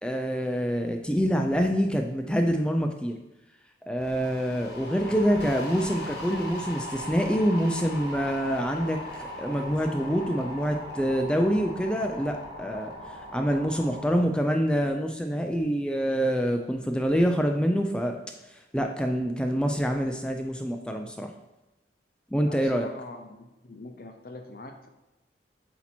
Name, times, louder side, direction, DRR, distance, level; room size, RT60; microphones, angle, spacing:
voice 1, 0.0-3.1 3.9-18.2 18.5-21.3 22.3-22.9, equal, 5° left, 4 dB, 0.3 m, -26 dB
sound 1, 4.0-14.2, left 1 dB, 70° left, 1.2 m, -39 dB
voice 2, 22.4-24.9, left 2 dB, 55° left, 5 dB, 0.7 m, -43 dB
8.3 x 2.8 x 4.3 m, 1.0 s
head